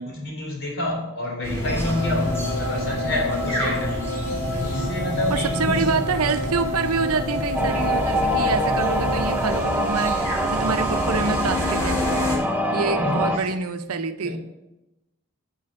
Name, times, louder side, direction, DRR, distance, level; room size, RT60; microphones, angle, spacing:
voice 1, 0.0-4.0 4.6-5.9 12.7-14.4, left 1 dB, 60° left, -1 dB, 3.7 m, -29 dB
sound 1, 1.4-12.4, left 1 dB, 10° left, 2.7 m, -29 dB
sound 2, 1.6-9.6, left 1 dB, 80° left, 3.6 m, -30 dB
voice 2, 5.3-12.0 12.7-14.4, right 4 dB, 85° right, 9 dB, 0.7 m, -26 dB
sound 3, 7.5-13.4, equal, 10° right, 0.7 m, -24 dB
11.0 x 6.0 x 5.4 m, 0.97 s
head